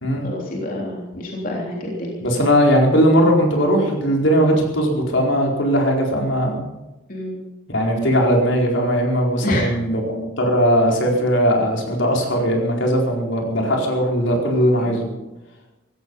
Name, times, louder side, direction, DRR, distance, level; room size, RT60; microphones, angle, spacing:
voice 1, 0.2-2.2 7.1-7.5 9.4-9.7 14.8-15.0, left 1 dB, 45° left, -2 dB, 3.4 m, -27 dB
voice 2, 2.2-6.6 7.7-15.1, equal, 65° left, 0 dB, 4.5 m, -19 dB
16.5 x 16.0 x 5.5 m, 1.0 s
head